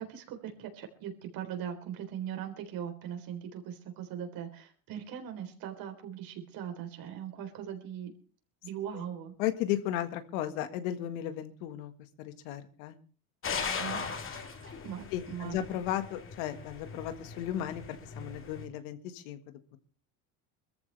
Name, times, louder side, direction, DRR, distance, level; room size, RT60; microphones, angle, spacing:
voice 1, 0.0-8.1 8.6-9.3 13.8-15.8, right 9 dB, 60° right, 5 dB, 3.8 m, -40 dB
voice 2, 9.4-11.9 12.2-13.0 15.1-19.4 19.7-19.8, left 12 dB, 90° left, 10 dB, 1.7 m, -35 dB
sound 1, 13.4-18.7, left 5 dB, 30° left, 2.4 m, -39 dB
22.5 x 14.0 x 3.4 m, 0.38 s
cardioid pair, 125°, 39 cm